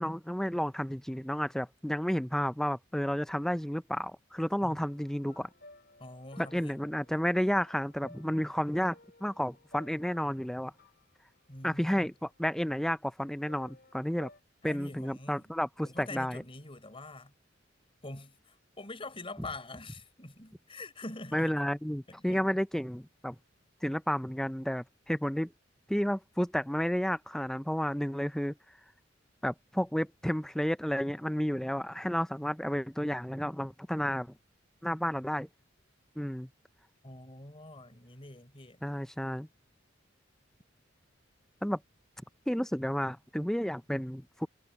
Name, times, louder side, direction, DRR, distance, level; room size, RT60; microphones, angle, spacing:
voice 1, 0.0-5.5 6.4-9.0 9.2-10.7 11.6-14.3 14.6-16.4 21.3-23.4 23.8-25.5 25.9-28.5 29.4-34.3 34.8-35.5 36.2-36.5 38.8-39.5 41.6-41.8 42.5-44.5, equal, 5° left, 0.5 m, -31 dB
sound 1, 4.7-12.7 13.5-14.4, left 2 dB, 55° left, 6.3 m, -58 dB
voice 2, 6.0-6.8 11.5-12.1 14.6-15.4 15.8-17.3 18.0-21.6 22.1-22.5 37.0-38.8, left 2 dB, 30° left, 4.3 m, -45 dB
head